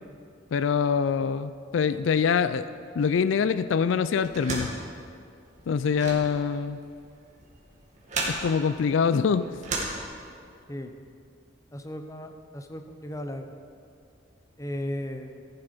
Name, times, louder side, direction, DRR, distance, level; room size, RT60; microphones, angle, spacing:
voice 1, 0.5-2.7 3.0-4.7 5.7-6.8 8.3-9.4, left 6 dB, 75° left, 13 dB, 0.4 m, -24 dB
sound 1, 4.2-10.6, right 2 dB, 40° right, 2.2 m, -35 dB
voice 2, 11.7-13.4 14.6-15.4, left 1 dB, 15° left, 6 dB, 0.7 m, -36 dB
14.5 x 9.0 x 5.2 m, 2.4 s
head